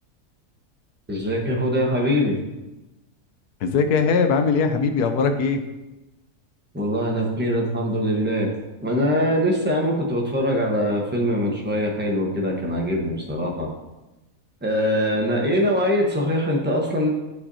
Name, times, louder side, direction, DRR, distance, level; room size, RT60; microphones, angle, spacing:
voice 1, 1.1-2.4 6.7-8.5 8.8-13.7 14.6-17.1, equal, 10° right, -1 dB, 1.0 m, -22 dB
voice 2, 3.6-5.6, left 5 dB, 75° left, 7 dB, 1.2 m, -20 dB
9.7 x 5.9 x 2.7 m, 1.0 s
omnidirectional pair, 1.7 m